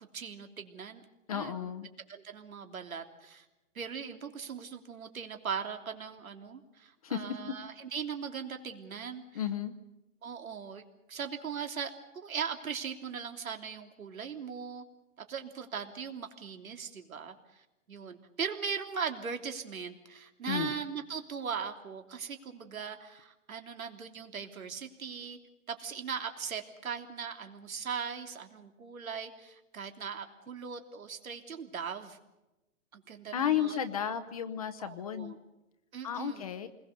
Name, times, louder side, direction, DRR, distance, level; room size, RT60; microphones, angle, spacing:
voice 1, 0.1-1.0 1.3-1.6 2.1-3.4 3.7-9.4 10.2-10.8 11.1-14.8 15.3-25.4 25.7-32.2 32.9-33.8 34.8-35.4 35.9-36.5, right 6 dB, 85° right, 5 dB, 3.2 m, -39 dB
voice 2, 1.3-1.9 7.0-7.4 9.3-9.7 20.4-20.7 33.3-35.3 36.0-36.7, left 9 dB, 25° left, 9 dB, 0.8 m, -33 dB
28.0 x 21.0 x 6.8 m, 1.0 s
hypercardioid pair, 170°, 41 cm